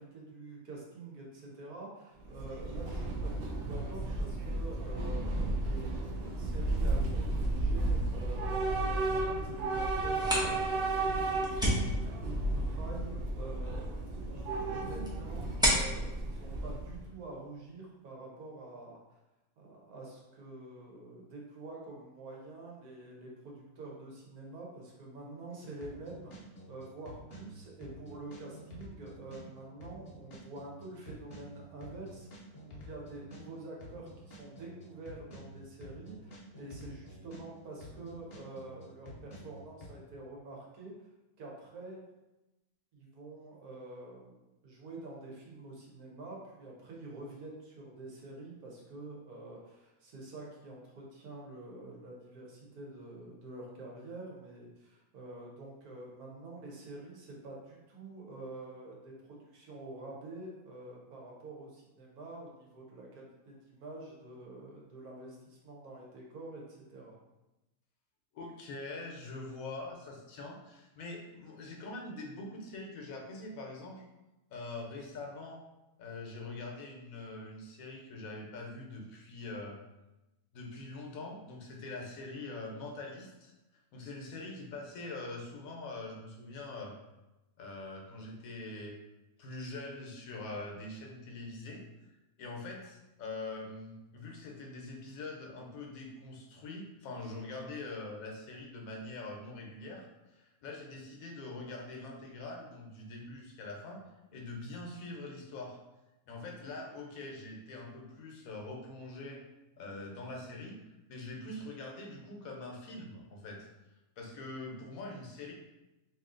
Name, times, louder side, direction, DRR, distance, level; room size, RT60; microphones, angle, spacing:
voice 1, 0.0-14.1 14.7-19.2 19.6-40.9 41.4-42.0 42.9-67.1, right 2 dB, 85° right, -2 dB, 1.4 m, -47 dB
Train / Subway metro underground, 2.2-17.0, right 2 dB, 60° right, 0.6 m, -33 dB
sound 1, 10.0-17.5, equal, 5° right, 0.5 m, -35 dB
sound 2, 25.8-37.5 37.8-39.9, equal, 50° left, 0.8 m, -49 dB
voice 2, 68.3-74.0 74.5-75.6 76.0-79.8 80.5-83.5 83.9-87.0 87.6-89.0 89.4-91.8 92.4-104.0 104.3-105.8 106.3-109.4 109.8-113.7 114.2-115.5, left 2 dB, 70° left, 1 dB, 1.1 m, -43 dB
3.0 x 2.7 x 3.6 m, 0.99 s
omnidirectional pair, 1.5 m